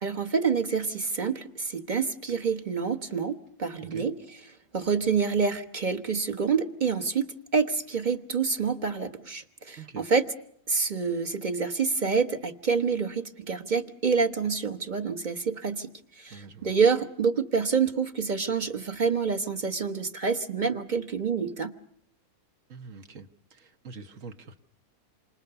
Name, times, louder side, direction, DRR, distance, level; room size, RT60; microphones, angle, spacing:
voice 1, 0.0-4.2 4.7-10.3 10.7-21.7, right 5 dB, 30° right, 8 dB, 1.2 m, -27 dB
voice 2, 16.3-16.7 22.7-24.6, right 4 dB, 55° right, 7 dB, 1.6 m, -45 dB
28.0 x 25.5 x 7.0 m, 0.68 s
omnidirectional pair, 1.6 m